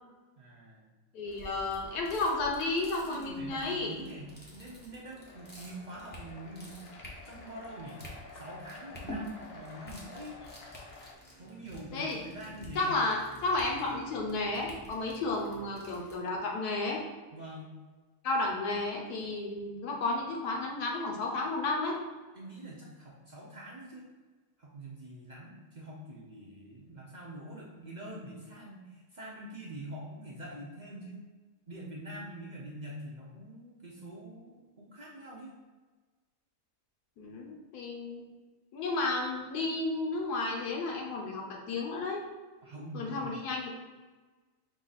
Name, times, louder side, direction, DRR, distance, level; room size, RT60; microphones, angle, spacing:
voice 1, 0.4-0.9 3.1-6.9 7.2-8.0 8.3-10.4 11.4-13.0 17.3-17.8 22.3-24.1 24.6-31.2 31.7-35.5 42.6-43.3, right 1 dB, 55° right, -5 dB, 0.5 m, -45 dB
voice 2, 1.1-3.9 11.9-12.2 12.7-17.0 18.2-22.0 37.2-38.2 38.7-42.3 42.9-43.7, left 2 dB, 75° left, -1 dB, 1.4 m, -32 dB
sound 1, 1.2-16.2, equal, 10° left, 0.4 m, -49 dB
sound 2, 5.2-11.1, left 3 dB, 60° left, 0.9 m, -51 dB
5.0 x 2.5 x 4.0 m, 1.3 s
omnidirectional pair, 1.7 m